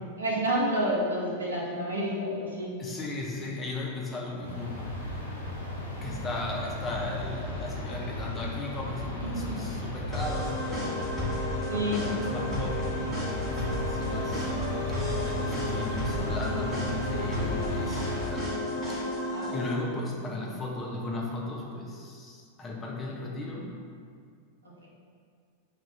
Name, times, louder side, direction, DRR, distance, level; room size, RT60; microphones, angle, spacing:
voice 1, 0.2-2.8 9.2-9.8 11.7-12.1 19.3-19.6 24.8-24.9, equal, 75° right, -4 dB, 0.5 m, -30 dB
voice 2, 2.8-5.2 5.9-14.5 15.0-18.5 18.9-19.1 19.5-23.7, left 2 dB, 20° left, -2 dB, 0.4 m, -36 dB
sound 1, 4.4-18.3, left 1 dB, 80° left, 0.5 m, -35 dB
sound 2, 10.1-19.7, left 1 dB, 15° right, 0.9 m, -32 dB
2.3 x 2.1 x 3.8 m, 2.2 s
figure-of-eight pair, 90°, 0 cm